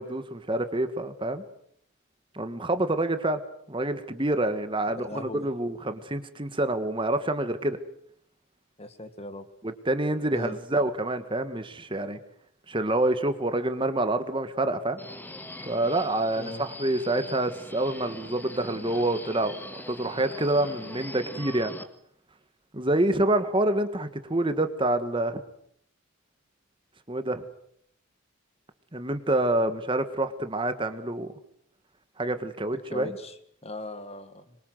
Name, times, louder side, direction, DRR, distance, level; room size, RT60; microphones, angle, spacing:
voice 1, 0.0-1.4 2.3-3.4 3.7-7.8 9.6-12.2 12.7-15.0 15.7-21.7 22.7-25.4 27.1-27.5 28.9-31.3 32.2-33.1, right 1 dB, 20° right, 10 dB, 1.5 m, -27 dB
voice 2, 4.9-5.5 8.8-9.5 10.3-10.6 16.3-16.6 32.7-34.6, left 1 dB, 30° left, 11 dB, 1.8 m, -39 dB
Subway metro underground, 15.0-21.8, left 1 dB, 10° left, 1.8 m, -42 dB
26.0 x 23.0 x 7.9 m, 0.69 s
head